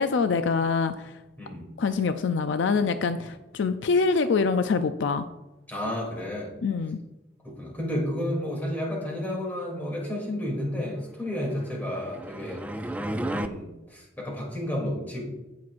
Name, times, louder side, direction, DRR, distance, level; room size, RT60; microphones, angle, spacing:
voice 1, 0.0-1.2 1.8-5.3 6.6-7.0, left 4 dB, 65° left, 9 dB, 0.4 m, -25 dB
voice 2, 1.4-1.7 3.1-3.3 5.7-6.5 7.4-12.7 13.3-15.2, left 1 dB, 10° left, -3 dB, 2.8 m, -31 dB
sound 1, 11.5-13.5, right 1 dB, 5° right, 0.4 m, -33 dB
17.0 x 6.0 x 2.5 m, 1.0 s
head